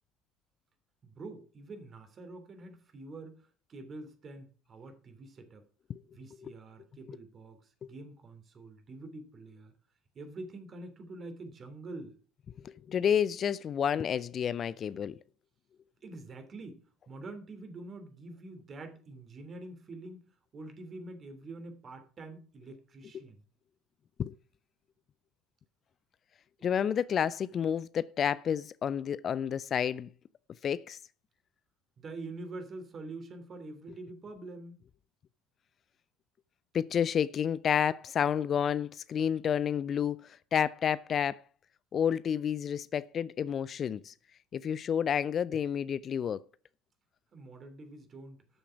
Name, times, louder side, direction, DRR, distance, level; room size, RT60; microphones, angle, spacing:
voice 1, 1.0-5.7 6.1-9.7 10.1-12.2 16.0-23.4 32.0-34.8 47.3-48.4, right 2 dB, 35° right, 3.0 m, -46 dB
voice 2, 12.6-15.2 23.1-23.2 24.2-24.3 26.6-30.1 30.6-31.0 36.7-41.4 41.9-44.1 44.5-46.4, left 8 dB, 40° left, 0.4 m, -30 dB
12.5 x 7.0 x 5.9 m
figure-of-eight pair, 65°, 0 cm